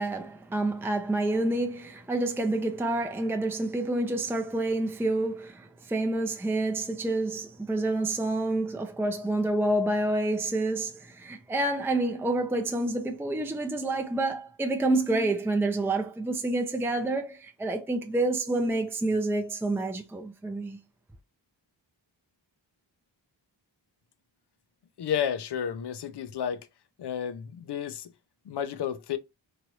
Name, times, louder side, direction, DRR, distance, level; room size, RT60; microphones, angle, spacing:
voice 1, 0.0-20.8, right 2 dB, 5° right, 0.5 m, -28 dB
voice 2, 25.0-26.7 27.0-28.1 28.4-29.2, left 8 dB, 60° left, 0.6 m, -31 dB
3.1 x 2.6 x 2.9 m
cardioid pair, 65°, 47 cm